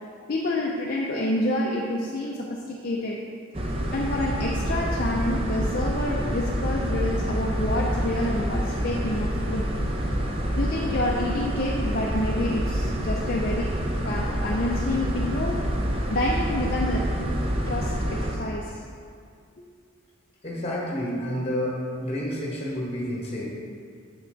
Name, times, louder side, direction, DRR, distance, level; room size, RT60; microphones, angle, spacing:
voice 1, 0.3-3.2 3.9-9.6 10.6-13.7 14.0-15.7 16.1-17.2 17.7-18.8, left 1 dB, 50° left, -3 dB, 0.5 m, -28 dB
sound 1, 3.5-18.4, equal, 30° right, 0.6 m, -27 dB
voice 2, 20.4-23.5, equal, 30° left, -4 dB, 1.4 m, -29 dB
7.1 x 5.8 x 3.9 m, 2.3 s
head